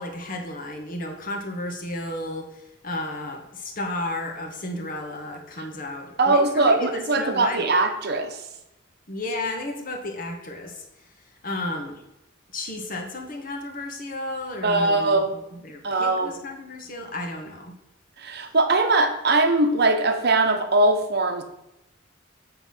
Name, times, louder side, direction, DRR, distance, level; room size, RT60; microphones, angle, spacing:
voice 1, 0.0-7.7 9.1-11.1 11.4-12.0 12.5-17.7, left 1 dB, 40° left, 3 dB, 1.3 m, -33 dB
voice 2, 6.2-8.5 14.6-15.4 15.8-16.4 18.2-21.4, right 2 dB, 50° right, 6 dB, 0.9 m, -21 dB
8.1 x 4.0 x 5.6 m, 0.87 s
head